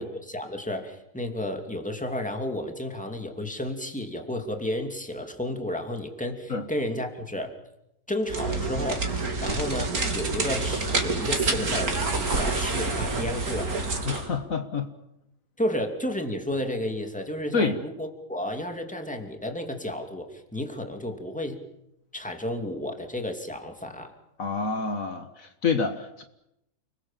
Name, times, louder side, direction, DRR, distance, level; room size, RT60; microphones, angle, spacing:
voice 1, 0.0-7.6 8.1-9.1 9.4-13.7 15.6-21.6 22.1-24.1, left 1 dB, 5° left, 4 dB, 2.7 m, -32 dB
sound 1, 8.2-14.3, right 3 dB, 65° right, 3.1 m, -27 dB
voice 2, 14.1-14.9 17.5-17.8 24.4-26.2, left 4 dB, 60° left, 8 dB, 1.8 m, -27 dB
29.5 x 21.5 x 7.5 m, 0.84 s
omnidirectional pair, 1.7 m